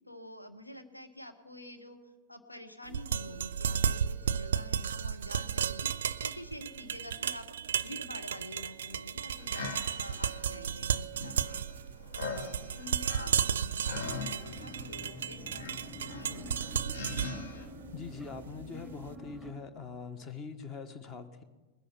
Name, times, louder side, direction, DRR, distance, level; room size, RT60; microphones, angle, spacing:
voice 1, 0.1-11.9 12.2-17.0, left 1 dB, 85° left, 7 dB, 1.1 m, -48 dB
sound 1, 2.9-18.9, right 8 dB, 65° right, 0.4 m, -34 dB
sound 2, 9.4-17.7, left 4 dB, 60° left, 1.4 m, -43 dB
sound 3, 14.5-19.5, equal, 15° left, 2.2 m, -47 dB
voice 2, 17.9-21.4, left 5 dB, 30° left, 11 dB, 1.4 m, -43 dB
20.5 x 10.5 x 5.7 m, 1.2 s
figure-of-eight pair, 90°, 0 cm